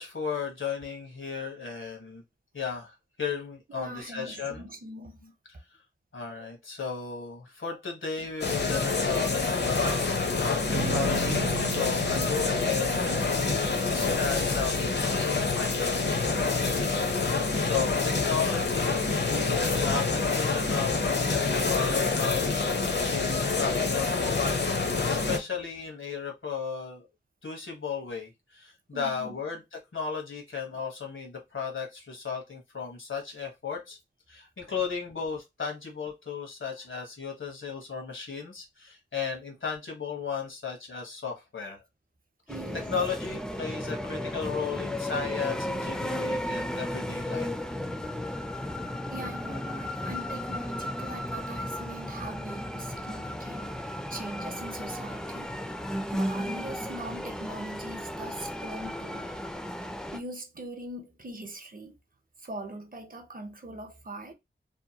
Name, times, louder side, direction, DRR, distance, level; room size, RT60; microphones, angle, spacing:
voice 1, 0.0-2.2 2.5-4.7 5.2-5.3 6.1-10.1 10.4-27.1 27.4-34.0 34.3-41.8 42.7-47.5, left 6 dB, 80° left, 1.0 m, -35 dB
voice 2, 3.7-5.2 13.6-14.1 28.9-29.4 42.5-42.9 49.1-55.5 56.1-59.3 60.1-61.9 62.4-64.3, right 1 dB, 45° right, 0.7 m, -42 dB
sound 1, 8.4-25.4, left 4 dB, 60° left, 0.6 m, -27 dB
sound 2, 10.7-14.8, right 5 dB, 90° right, 0.7 m, -37 dB
sound 3, 42.5-60.2, left 1 dB, 5° left, 0.3 m, -34 dB
2.7 x 2.2 x 2.7 m
wide cardioid pair, 65°, 20 cm